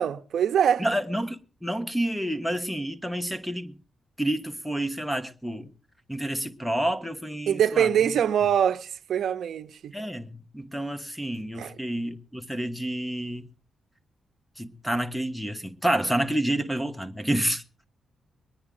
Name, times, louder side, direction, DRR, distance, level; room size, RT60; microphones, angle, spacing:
voice 1, 0.0-0.9 7.5-9.9 11.6-11.8, right 9 dB, 75° right, 0.7 m, -24 dB
voice 2, 0.8-3.8 4.2-5.7 6.1-7.9 9.9-13.5 14.6-17.6, right 1 dB, ahead, 1.2 m, -29 dB
23.0 x 9.9 x 3.8 m
cardioid pair, 105°, 0 cm